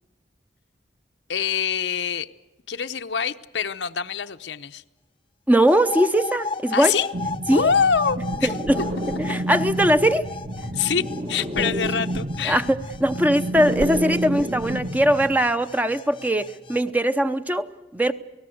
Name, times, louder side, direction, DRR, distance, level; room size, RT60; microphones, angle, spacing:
voice 1, 1.3-2.3 2.7-4.8 6.7-7.1 7.5-8.6 9.5-9.6 10.7-11.0 11.3-12.6, left 6 dB, 80° left, 9 dB, 0.9 m, -25 dB
voice 2, 5.5-6.9 7.5-7.7 8.4-8.8 9.2-10.3 12.4-18.1, equal, 10° right, 10 dB, 0.7 m, -21 dB
sound 1, 5.7-16.8, left 4 dB, 30° left, 0.8 m, -35 dB
sound 2, 7.1-15.4, right 1 dB, 35° right, 1.3 m, -29 dB
28.5 x 18.5 x 7.9 m, 1.1 s
head